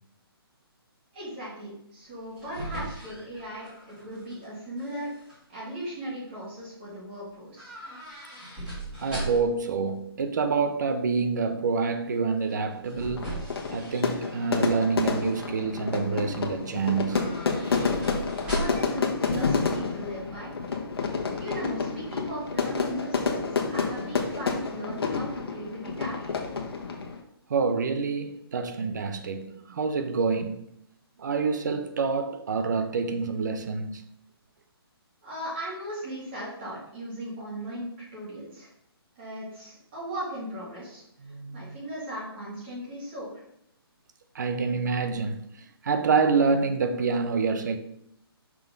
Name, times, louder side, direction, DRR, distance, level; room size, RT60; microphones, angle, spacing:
voice 1, 1.1-5.1 5.5-7.7 18.4-20.5 21.4-26.3 35.2-38.7 39.2-41.0 41.5-43.3, equal, 25° right, 2.2 m, -37 dB
sound 1, 2.1-4.5 4.8-5.3 7.5-9.7 12.4-14.6 15.0-15.5 16.9-19.0 19.3-19.4, right 1 dB, 10° right, 1.8 m, -38 dB
voice 2, 9.0-13.4 13.7-17.3 27.5-30.6 31.2-34.0 41.2-41.8 44.3-47.8, right 4 dB, 45° right, 0.7 m, -27 dB
Fire / Fireworks, 13.2-27.2, left 4 dB, 70° left, 1.2 m, -29 dB
6.0 x 3.5 x 5.2 m
hypercardioid pair, 175°, 13 cm